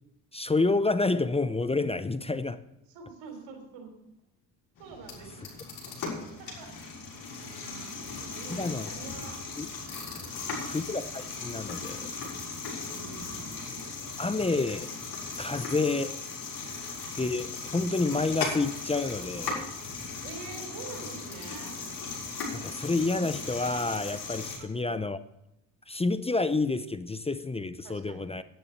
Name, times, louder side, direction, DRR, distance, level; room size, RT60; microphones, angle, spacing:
voice 1, 0.3-2.6 8.5-8.9 9.6-9.7 10.6-12.1 14.2-14.9 15.4-16.2 17.1-19.7 22.5-25.2 25.9-28.4, left 3 dB, 15° left, 13 dB, 0.7 m, -29 dB
voice 2, 2.9-3.9 4.8-5.6 6.4-6.8 7.4-9.4 10.2-10.8 12.8-13.6 20.2-21.7 24.6-25.1 27.8-28.3, right 5 dB, 90° right, 4 dB, 3.7 m, -46 dB
sound 1, 4.8-24.6, left 4 dB, 60° left, 6.5 m, -38 dB
11.0 x 10.0 x 6.7 m, 0.88 s
supercardioid pair, 80°, 41 cm